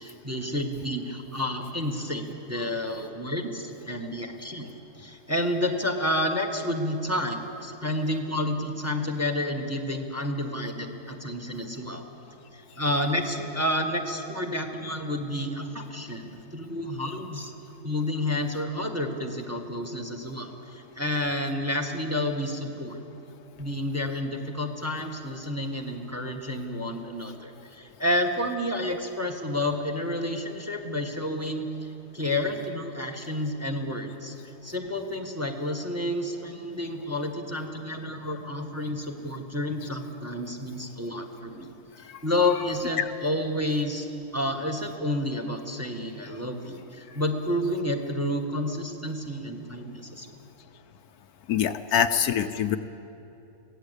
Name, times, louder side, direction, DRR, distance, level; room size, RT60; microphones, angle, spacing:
voice 1, 0.0-4.7 5.0-12.1 12.5-17.5 17.8-23.0 23.6-31.7 32.1-34.3 34.6-41.7 42.2-44.1 44.3-50.3 51.9-52.0, left 1 dB, 10° right, 4 dB, 1.5 m, -30 dB
voice 2, 51.5-52.8, left 8 dB, 70° left, 9 dB, 1.2 m, -24 dB
22.5 x 17.0 x 8.2 m, 2.9 s
omnidirectional pair, 1.7 m